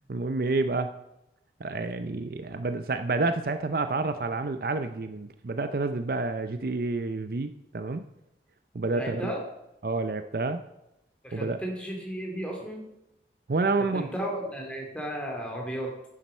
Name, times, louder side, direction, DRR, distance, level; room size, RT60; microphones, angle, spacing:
voice 1, 0.1-0.9 1.6-8.0 8.7-9.3 9.8-10.6 11.3-11.6 13.5-14.1, right 3 dB, 55° right, 9 dB, 0.5 m, -29 dB
voice 2, 8.9-9.4 11.2-12.8 13.9-15.9, right 1 dB, 5° left, 0 dB, 2.4 m, -34 dB
10.5 x 7.5 x 5.5 m, 0.90 s
head